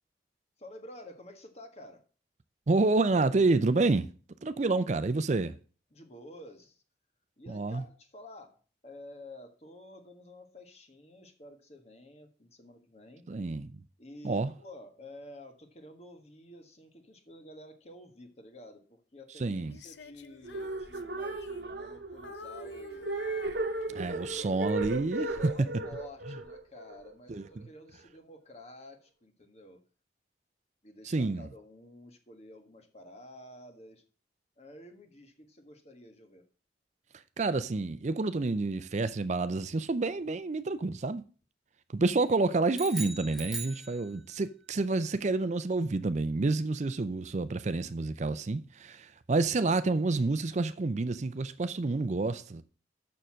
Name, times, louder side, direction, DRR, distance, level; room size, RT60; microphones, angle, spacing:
voice 1, 0.6-2.0 4.6-4.7 5.9-6.8 7.4-13.3 14.0-23.1 23.9-24.5 25.1-29.8 30.8-34.0 34.6-36.4, left 1 dB, 35° left, 1.6 m, -50 dB
voice 2, 2.7-4.1 4.4-5.5 7.5-7.8 13.3-13.7 14.2-14.5 19.4-19.8 24.0-25.4 27.3-27.4 31.1-31.5 37.4-41.3 41.9-52.6, right 3 dB, 40° right, 0.5 m, -29 dB
Female singing, 19.7-22.0 22.2-24.3 24.8-25.1, left 2 dB, 80° left, 0.7 m, -48 dB
sound 1, 20.4-27.6, right 2 dB, 65° right, 1.0 m, -36 dB
sound 2, 42.7-44.5, right 3 dB, ahead, 1.4 m, -40 dB
6.9 x 6.4 x 7.4 m
head